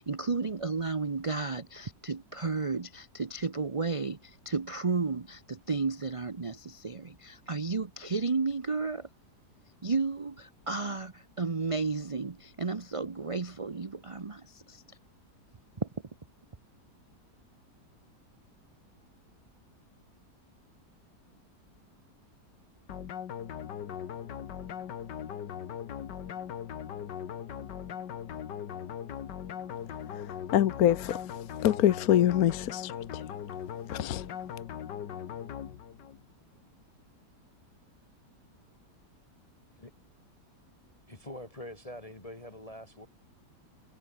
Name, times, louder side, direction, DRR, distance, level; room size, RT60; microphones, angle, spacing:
voice 1, 0.0-9.1 9.8-14.8 15.8-15.9, right 4 dB, 25° right, 0.7 m, -33 dB
sound 1, 22.9-36.2, left 9 dB, 90° left, 2.0 m, -39 dB
voice 2, 30.1-31.2 31.6-33.2 33.9-34.3, left 11 dB, 65° left, 1.2 m, -25 dB
voice 3, 41.1-43.1, left 1 dB, 20° left, 2.0 m, -44 dB
omnidirectional pair, 1.8 m